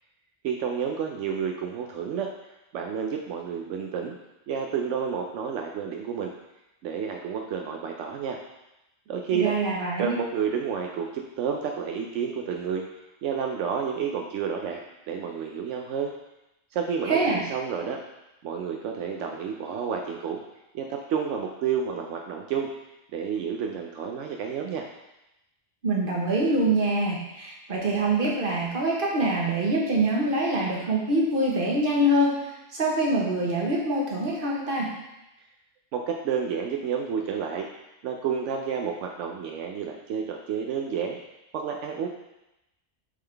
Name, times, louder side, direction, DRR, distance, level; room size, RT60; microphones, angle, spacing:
voice 1, 0.4-2.3 2.7-4.2 4.5-6.3 6.8-8.4 9.1-9.5 10.0-12.8 13.2-16.1 16.7-18.0 18.4-20.4 20.7-22.7 23.1-24.9 35.9-37.7 38.0-41.2 41.5-42.1, right 7 dB, 80° right, 2 dB, 0.9 m, -30 dB
voice 2, 9.3-10.2 17.0-17.4 25.8-34.9, right 1 dB, 50° right, -3 dB, 1.4 m, -25 dB
8.3 x 3.7 x 3.4 m, 0.93 s
omnidirectional pair, 1.2 m